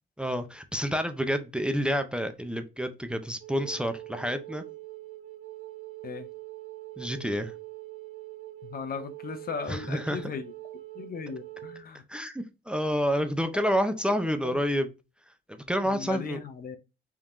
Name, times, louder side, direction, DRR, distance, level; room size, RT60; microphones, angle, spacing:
voice 1, 0.2-4.6 7.0-7.5 9.7-10.2 12.1-14.9 15.5-16.4, equal, 5° right, 0.6 m, -29 dB
Wind instrument woodwind instrument, 3.4-11.8, right 17 dB, 65° right, 1.4 m, -43 dB
voice 2, 8.6-10.5 10.9-12.0 13.5-13.6 14.0-14.1 14.4-14.6 15.9-16.8, left 5 dB, 50° left, 0.7 m, -37 dB
3.6 x 2.9 x 3.7 m
cardioid pair, 90°, 20 cm